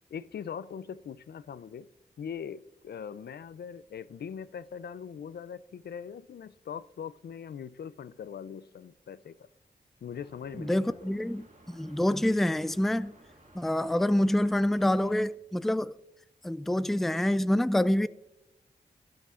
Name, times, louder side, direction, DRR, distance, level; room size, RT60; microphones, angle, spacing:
voice 1, 0.1-1.9 2.2-9.5 10.0-11.2, left 7 dB, 75° left, 0.4 m, -41 dB
sound 1, 10.1-15.2, right 1 dB, 50° right, 2.0 m, -56 dB
voice 2, 10.6-13.1 13.5-15.9 16.4-18.1, left 1 dB, ahead, 0.3 m, -26 dB
12.5 x 11.0 x 2.4 m
cardioid pair, 45°, 17 cm